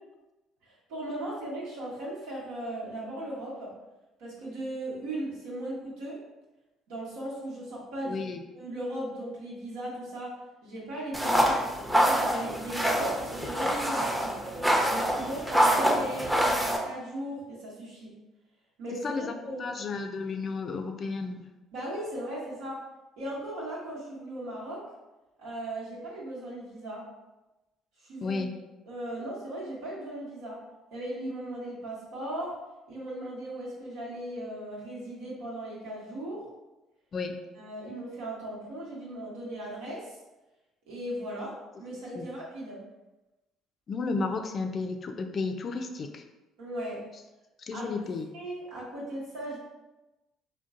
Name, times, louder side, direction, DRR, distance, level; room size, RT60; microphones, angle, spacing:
voice 1, 0.6-3.7 4.2-6.2 6.9-8.2 8.5-10.3 10.6-11.6 11.9-14.4 14.9-18.1 18.8-19.7 21.7-22.8 23.2-24.8 25.4-27.0 28.0-28.4 28.9-30.6 30.9-32.5 32.9-36.5 37.6-40.2 40.9-42.8 46.6-47.0 47.7-47.9 48.3-49.6, right 1 dB, 75° right, -6 dB, 1.2 m, -37 dB
voice 2, 8.1-8.4 19.0-19.3 19.6-21.5 28.2-28.5 37.1-37.4 42.2-42.3 43.9-46.2 47.6-48.3, left 4 dB, 45° left, 5 dB, 0.4 m, -33 dB
sound 1, 11.1-16.8, equal, 10° right, 0.7 m, -26 dB
3.7 x 2.2 x 2.5 m, 1.0 s
hypercardioid pair, 60°, 0 cm